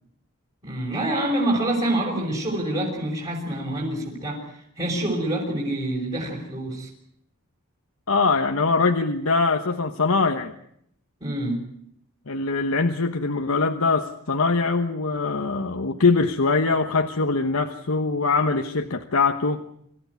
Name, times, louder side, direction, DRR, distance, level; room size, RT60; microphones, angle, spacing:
voice 1, 0.6-6.9 11.2-11.6, right 1 dB, 30° right, -3 dB, 5.5 m, -26 dB
voice 2, 8.1-10.5 12.3-19.6, left 4 dB, 70° left, 5 dB, 1.2 m, -22 dB
26.0 x 14.5 x 9.6 m, 0.72 s
head